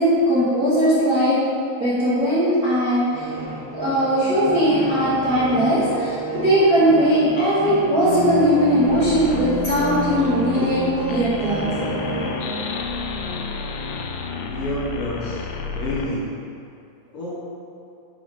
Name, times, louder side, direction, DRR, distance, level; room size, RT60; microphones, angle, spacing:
voice 1, 0.0-1.4 1.8-3.3 3.7-11.6, equal, 55° right, -14 dB, 0.9 m, -19 dB
sound 1, 3.1-12.9, right 2 dB, 75° right, 1.5 m, -30 dB
sound 2, 8.9-16.1, left 4 dB, 85° left, 1.8 m, -31 dB
voice 2, 14.5-16.3 17.1-17.4, left 1 dB, 70° left, -10 dB, 1.3 m, -29 dB
5.3 x 4.7 x 5.0 m, 2.7 s
omnidirectional pair, 4.1 m